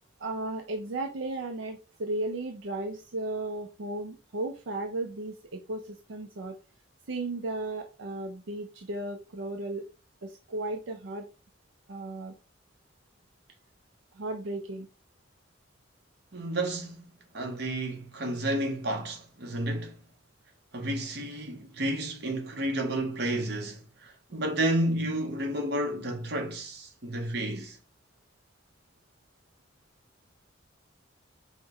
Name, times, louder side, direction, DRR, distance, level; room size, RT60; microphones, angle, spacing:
voice 1, 0.2-6.6 7.1-9.9 10.2-11.3 11.9-12.3 14.2-14.9, right 2 dB, 80° right, 0.5 m, -35 dB
voice 2, 16.3-19.9 20.7-27.8, right 1 dB, 55° right, 0.9 m, -31 dB
5.6 x 2.1 x 2.9 m
head